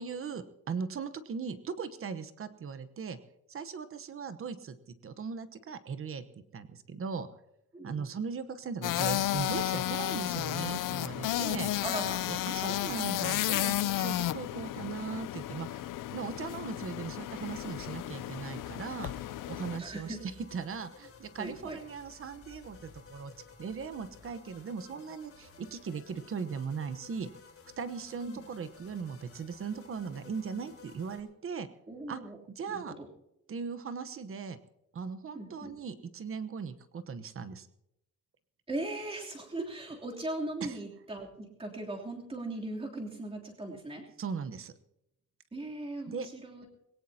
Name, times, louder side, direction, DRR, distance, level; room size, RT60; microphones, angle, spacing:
voice 1, 0.0-3.2 3.5-4.8 5.0-6.2 6.5-7.3 7.8-11.7 12.3-23.3 23.6-27.3 27.8-31.7 32.1-32.2 32.6-32.9 33.5-34.6 34.9-37.7 40.6-40.8 44.2-44.7 46.1-46.3, right 5 dB, 45° right, 12 dB, 1.0 m, -38 dB
voice 2, 7.7-8.2 11.8-12.2 12.6-13.0 19.7-20.2 21.4-21.8 28.2-28.4 31.9-32.4 32.7-33.1 35.3-35.7 38.7-44.0 45.5-46.7, right 2 dB, 20° right, -1 dB, 3.1 m, -39 dB
sound 1, 8.8-19.8, left 14 dB, 85° left, 0.6 m, -33 dB
sound 2, 17.5-31.2, left 5 dB, 45° left, 3.5 m, -54 dB
21.5 x 17.5 x 2.8 m, 0.86 s
wide cardioid pair, 175°, 32 cm